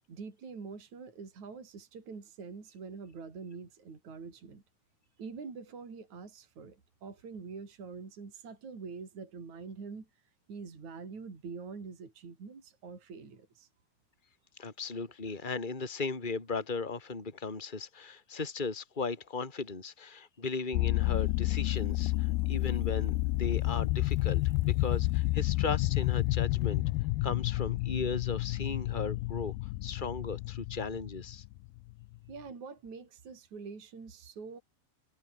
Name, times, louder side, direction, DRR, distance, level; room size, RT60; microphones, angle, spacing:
voice 1, 0.1-4.6 5.2-10.1 10.5-13.7 32.3-34.6, right 5 dB, 50° right, 5.9 m, -45 dB
voice 2, 14.6-26.8 27.2-29.5 29.8-31.4, left 4 dB, 15° left, 3.1 m, -37 dB
sound 1, 20.7-32.2, left 19 dB, 85° left, 2.6 m, -30 dB
omnidirectional pair, 4.4 m